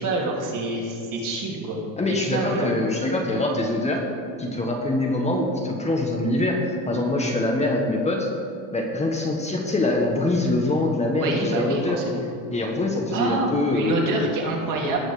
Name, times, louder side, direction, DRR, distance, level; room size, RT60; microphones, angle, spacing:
voice 1, 0.0-1.8 2.1-2.7 11.1-12.2 13.1-15.1, right 2 dB, 50° right, -1 dB, 2.8 m, -27 dB
voice 2, 2.0-4.0 4.4-8.3 8.7-12.0 12.5-14.1, left 2 dB, 15° left, 0 dB, 1.4 m, -24 dB
18.5 x 6.3 x 5.0 m, 2.5 s
supercardioid pair, 120°, 42 cm